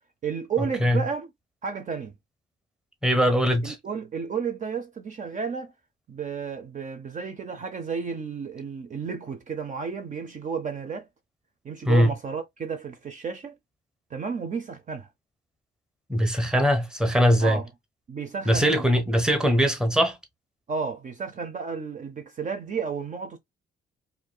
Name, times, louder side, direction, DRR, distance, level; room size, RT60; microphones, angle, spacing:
voice 1, 0.2-1.3 1.6-2.1 3.6-5.7 6.1-11.1 11.6-13.5 14.1-15.1 17.4-17.7 18.1-18.9 20.7-23.4, right 6 dB, 40° right, 0.6 m, -32 dB
voice 2, 3.0-3.8 11.9-12.1 16.1-17.6 18.5-20.2, equal, 5° right, 1.0 m, -21 dB
4.5 x 2.7 x 2.2 m
cardioid pair, 90°, 20 cm